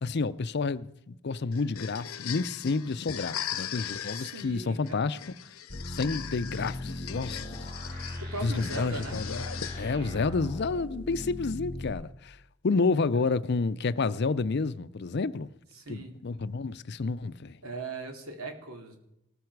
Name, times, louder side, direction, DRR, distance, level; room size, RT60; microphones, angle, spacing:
voice 1, 0.0-5.2 5.9-7.7 8.4-9.4 9.7-12.4 12.6-15.5 15.9-17.6, left 4 dB, 50° left, 0.5 m, -30 dB
sound 1, 1.5-10.2, left 9 dB, 85° left, 0.8 m, -39 dB
voice 2, 4.1-5.1 8.2-9.2 10.1-10.2 12.7-13.0 15.7-16.1 17.6-19.0, right 3 dB, 80° right, 2.7 m, -40 dB
sound 2, 5.7-11.9, left 1 dB, 45° right, 4.6 m, -38 dB
18.5 x 13.5 x 4.7 m
head